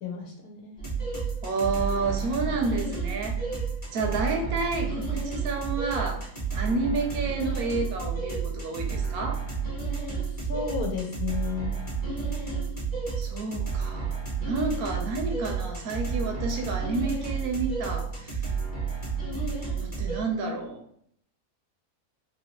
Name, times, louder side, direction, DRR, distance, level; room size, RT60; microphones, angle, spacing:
voice 1, 0.0-0.8 10.4-11.8, left 6 dB, 70° left, 0 dB, 1.2 m, -33 dB
sound 1, 0.8-20.2, right 5 dB, 15° left, 1.0 m, -31 dB
voice 2, 1.4-3.4 3.9-9.5 13.2-14.2 14.5-18.4 19.8-20.8, right 3 dB, 75° right, 3 dB, 1.1 m, -30 dB
3.1 x 2.8 x 2.9 m, 0.67 s
omnidirectional pair, 1.7 m